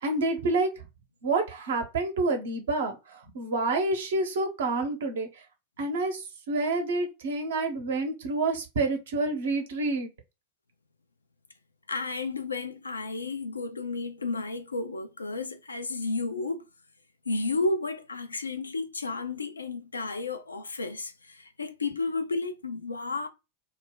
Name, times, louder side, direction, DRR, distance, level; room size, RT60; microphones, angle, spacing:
voice 1, 0.0-0.8 1.2-5.4 5.8-10.1, right 3 dB, 60° right, 0.8 m, -28 dB
voice 2, 11.9-16.6 17.3-23.3, left 3 dB, 75° left, 0.4 m, -32 dB
2.3 x 2.1 x 3.6 m
figure-of-eight pair, 90°, 0 cm